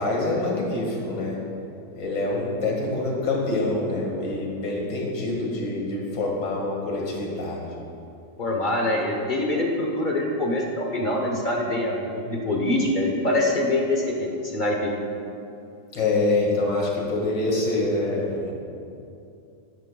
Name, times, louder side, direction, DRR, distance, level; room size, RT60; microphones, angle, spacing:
voice 1, 0.0-1.4 2.0-7.7 15.9-18.5, left 2 dB, 85° left, -3 dB, 2.4 m, -26 dB
voice 2, 8.4-14.9, left 1 dB, 40° left, 0 dB, 0.7 m, -24 dB
11.5 x 11.0 x 2.2 m, 2.6 s
omnidirectional pair, 1.9 m